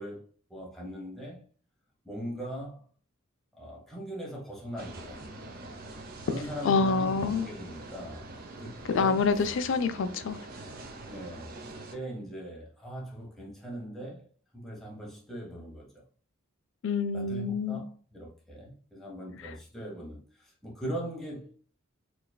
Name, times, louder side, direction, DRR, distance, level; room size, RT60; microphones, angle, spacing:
voice 1, 0.0-1.5 2.0-2.9 3.5-5.2 6.3-8.2 8.6-9.5 11.0-14.3 14.5-16.0 17.1-21.5, equal, ahead, 1.1 m, -40 dB
sound 1, 4.8-12.0, right 2 dB, 45° right, 0.6 m, -44 dB
voice 2, 6.6-7.5 8.9-10.4 16.8-17.8, left 4 dB, 60° left, 0.4 m, -26 dB
4.5 x 3.2 x 2.2 m
head